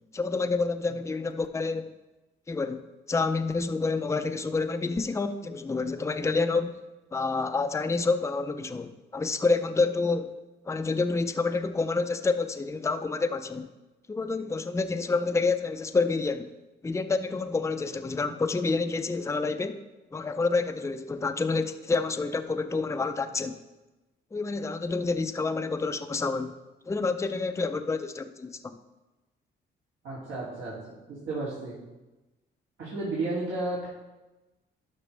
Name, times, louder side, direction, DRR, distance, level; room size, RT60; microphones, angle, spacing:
voice 1, 0.1-1.9 2.5-2.8 3.1-6.8 7.1-10.3 10.7-13.7 14.1-16.5 16.8-19.8 20.1-23.6 24.3-26.5 26.9-28.5, left 3 dB, 15° left, 8 dB, 0.5 m, -28 dB
voice 2, 30.0-31.7 32.8-33.9, right 2 dB, 75° right, -9 dB, 2.8 m, -33 dB
12.0 x 5.8 x 3.3 m, 1.1 s
cardioid pair, 90°, 20 cm